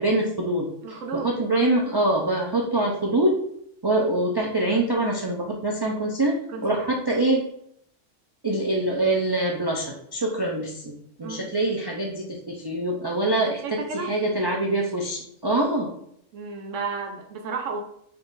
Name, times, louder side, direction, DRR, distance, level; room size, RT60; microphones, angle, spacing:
voice 1, 0.0-0.7 1.1-3.4 3.8-7.4 8.4-15.9, right 1 dB, 40° right, -1 dB, 0.3 m, -24 dB
voice 2, 0.8-1.3 6.5-6.8 11.2-11.4 13.6-14.1 16.3-17.8, right 4 dB, 85° right, 2 dB, 1.1 m, -32 dB
4.3 x 2.5 x 3.6 m, 0.68 s
omnidirectional pair, 1.3 m